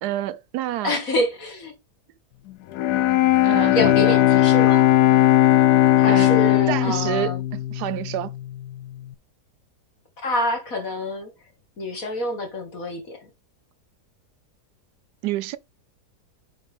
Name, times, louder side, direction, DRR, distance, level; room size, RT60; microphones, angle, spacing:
voice 1, 0.0-1.0 3.4-4.2 6.1-6.4 6.7-8.3 15.2-15.6, right 14 dB, 85° right, 1.2 m, -28 dB
voice 2, 0.8-1.7 3.7-4.9 6.0-7.4 10.2-11.3 11.8-13.3, left 1 dB, 55° left, 2.7 m, -27 dB
Bowed string instrument, 2.7-8.7, left 14 dB, 80° left, 1.1 m, -18 dB
8.0 x 5.2 x 3.6 m
omnidirectional pair, 1.7 m